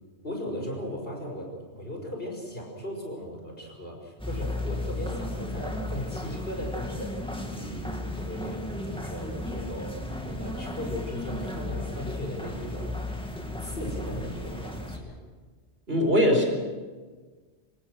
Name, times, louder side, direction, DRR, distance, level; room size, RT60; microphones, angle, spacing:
voice 1, 0.2-7.3 7.5-13.0 13.6-15.2, equal, 55° left, 0 dB, 5.9 m, -37 dB
sound 1, 4.2-15.0, left 1 dB, 5° left, 2.1 m, -34 dB
voice 2, 15.9-16.5, equal, 60° right, 3 dB, 4.5 m, -21 dB
25.0 x 19.5 x 6.4 m, 1.4 s
omnidirectional pair, 1.2 m